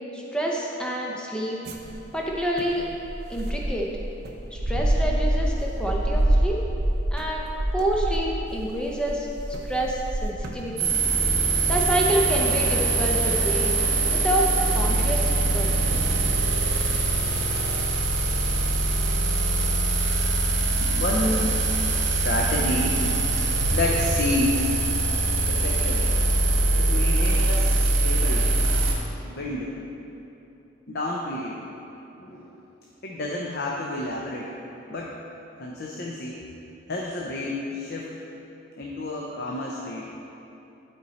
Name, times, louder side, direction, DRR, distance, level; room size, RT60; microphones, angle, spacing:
voice 1, 0.1-1.6 2.1-2.9 3.3-3.9 4.5-6.6 7.1-7.5 7.7-9.3 9.6-10.9 11.7-13.8 14.1-15.7, right 1 dB, 5° left, -2 dB, 0.6 m, -27 dB
sound 1, 1.6-14.8 15.5-15.6 15.9-16.1 16.5-17.1, right 1 dB, 55° right, 0.7 m, -28 dB
sound 2, 10.8-28.9, right 3 dB, 75° right, 1.3 m, -23 dB
voice 2, 20.8-21.6 22.0-23.0 23.6-24.7 25.5-26.0 26.8-28.5 29.2-29.8 30.9-31.7 32.2-32.6 33.0-34.5 34.9-35.1 35.6-36.4 36.9-38.1 38.8-40.1, left 1 dB, 55° left, -2 dB, 0.7 m, -29 dB
11.5 x 4.4 x 4.1 m, 2.9 s
head